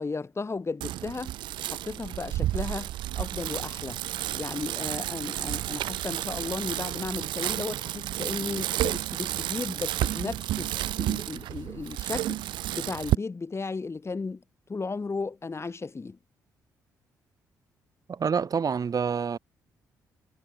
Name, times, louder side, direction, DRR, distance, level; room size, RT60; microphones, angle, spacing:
voice 1, 0.0-2.9 3.1-4.0 4.3-12.4 12.7-14.4 14.7-16.2, left 4 dB, 30° left, 4.7 m, -35 dB
Bicycle, 0.8-13.1, right 14 dB, 60° right, 0.8 m, -31 dB
voice 2, 18.1-19.4, right 6 dB, 45° right, 5.6 m, -27 dB
figure-of-eight pair, 40°, 9 cm